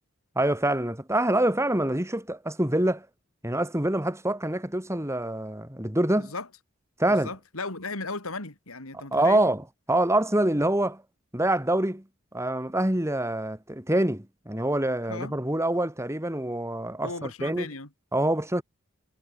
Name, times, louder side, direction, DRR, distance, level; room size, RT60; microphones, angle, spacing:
voice 1, 0.3-3.1 3.4-6.3 7.0-7.3 8.9-11.0 11.3-12.0 12.3-17.7 18.1-18.6, right 1 dB, 15° right, 3.3 m, -25 dB
voice 2, 6.2-6.5 7.1-9.4 15.1-15.3 17.0-17.9, left 3 dB, 80° left, 4.2 m, -36 dB
head